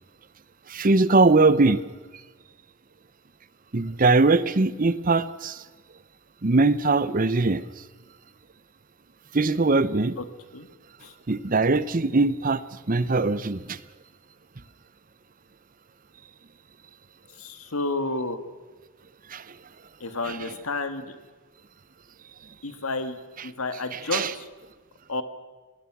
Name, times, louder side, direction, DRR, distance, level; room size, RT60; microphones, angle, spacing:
voice 1, 0.7-1.8 3.7-5.6 6.4-7.6 9.3-10.2 11.3-13.8 19.3-19.6 20.3-20.4 23.9-24.3, right 3 dB, 40° right, 16 dB, 0.8 m, -21 dB
voice 2, 17.4-18.4 20.0-21.2 22.6-23.2 23.4-24.5 25.1-25.2, left 3 dB, 85° left, 9 dB, 1.8 m, -30 dB
26.5 x 20.0 x 6.1 m, 1.3 s
head